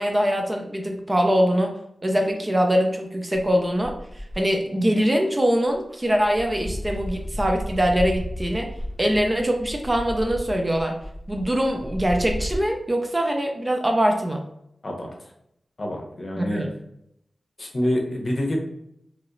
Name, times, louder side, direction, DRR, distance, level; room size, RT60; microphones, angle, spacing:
voice 1, 0.0-1.7 2.0-4.0 4.4-8.7 9.0-11.0 11.3-14.4 16.4-16.7, equal, 20° right, 3 dB, 0.4 m, -23 dB
sound 1, 3.3-4.5 5.2-5.4 5.7-12.6, equal, 5° right, 1.3 m, -33 dB
voice 2, 15.8-16.6 17.6-18.6, left 1 dB, 45° left, 0 dB, 0.7 m, -26 dB
3.0 x 2.8 x 2.5 m, 0.77 s
wide cardioid pair, 90°, 0 cm